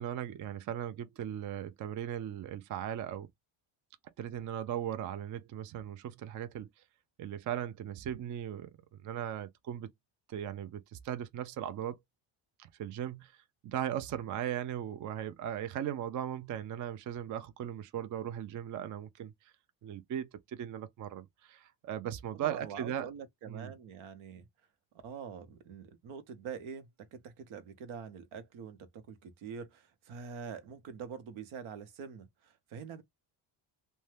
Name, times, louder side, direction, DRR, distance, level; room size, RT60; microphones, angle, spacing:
voice 1, 0.0-3.3 4.2-6.7 7.2-8.7 9.0-9.9 10.3-12.0 12.6-19.5 19.8-23.1 23.5-23.7, right 10 dB, 40° right, 0.4 m, -38 dB
voice 2, 22.4-24.5 25.0-33.0, right 6 dB, 75° right, 0.9 m, -45 dB
2.6 x 2.2 x 3.2 m
cardioid pair, 110°, 49 cm